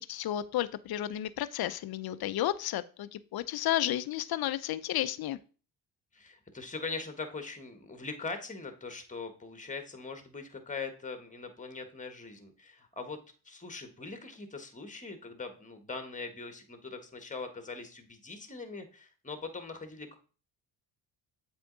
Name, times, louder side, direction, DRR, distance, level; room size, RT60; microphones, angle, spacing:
voice 1, 0.0-5.4, left 12 dB, 50° left, 15 dB, 0.6 m, -32 dB
voice 2, 6.1-13.2 13.4-20.2, left 4 dB, 15° left, 7 dB, 1.4 m, -41 dB
7.7 x 3.6 x 3.9 m, 0.37 s
supercardioid pair, 70°, 48 cm